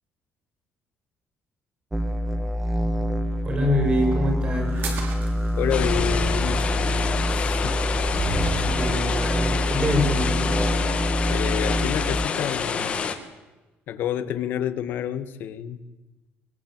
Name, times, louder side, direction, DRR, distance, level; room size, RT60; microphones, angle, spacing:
sound 1, 1.9-12.3, equal, 5° right, 1.5 m, -25 dB
voice 1, 3.4-4.8 8.1-8.2 8.6-10.5, left 1 dB, 25° right, 4 dB, 6.5 m, -25 dB
sound 2, 4.7-8.9, right 3 dB, 50° right, 5.8 m, -34 dB
voice 2, 5.6-7.8 11.3-12.9 13.9-15.8, left 10 dB, 55° left, 12 dB, 1.8 m, -29 dB
sound 3, 5.7-13.2, left 6 dB, 30° left, 2.1 m, -28 dB
23.0 x 21.0 x 9.0 m, 1.1 s
cardioid pair, 175°, 4 cm